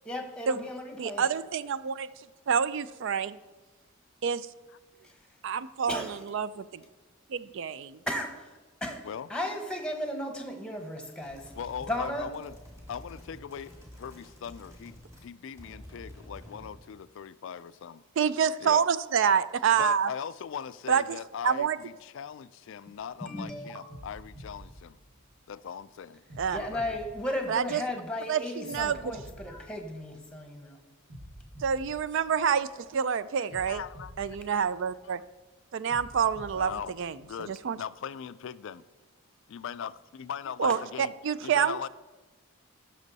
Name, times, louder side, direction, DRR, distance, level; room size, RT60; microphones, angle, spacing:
voice 1, 0.0-1.2 5.0-5.1 5.9-6.2 8.1-9.0 9.3-11.5 11.9-12.3 23.2-23.7 26.5-30.8, left 1 dB, 5° left, 1.1 m, -35 dB
voice 2, 1.0-2.1 2.5-3.4 4.2-4.5 5.4-6.8 7.3-8.0 18.2-20.1 20.9-21.2 21.4-21.8 26.4-26.6 27.5-27.8 28.3-29.2 31.6-33.8 34.2-35.2 35.7-37.2 37.5-37.8 40.6-41.9, right 7 dB, 60° right, 0.3 m, -27 dB
sound 1, 11.1-15.3 15.6-16.9, equal, 15° right, 1.9 m, -49 dB
voice 3, 11.5-12.6 12.9-13.7 14.0-15.0 15.2-18.0 18.6-18.8 19.7-25.0 25.5-26.2 26.5-26.8 33.7-34.1 36.5-36.9 37.2-38.8 39.5-41.1 41.4-41.9, left 7 dB, 60° left, 0.3 m, -39 dB
sound 2, 23.0-23.3 23.9-25.7 26.3-28.1 28.7-30.5 31.1-32.9 33.5-35.3 35.9-37.7, equal, 85° right, 2.2 m, -48 dB
16.0 x 6.3 x 4.0 m
head